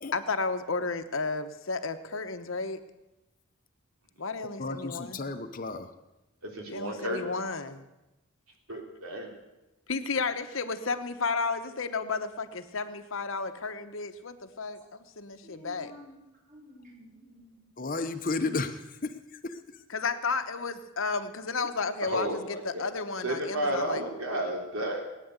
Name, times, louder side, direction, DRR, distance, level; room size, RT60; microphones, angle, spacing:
voice 1, 0.1-2.8 4.2-5.2 6.7-7.8 9.9-14.8 15.2-15.9 19.9-24.0, left 4 dB, 65° left, 9 dB, 1.0 m, -32 dB
voice 2, 4.6-5.9 17.8-19.1 19.4-19.6, left 3 dB, 40° left, 8 dB, 0.8 m, -33 dB
voice 3, 6.4-7.2 8.7-9.3 22.0-22.9 23.2-25.0, right 1 dB, 75° right, 2 dB, 3.5 m, -32 dB
voice 4, 15.4-17.7, equal, 35° right, -3 dB, 6.6 m, -51 dB
19.0 x 9.3 x 8.1 m, 0.98 s
head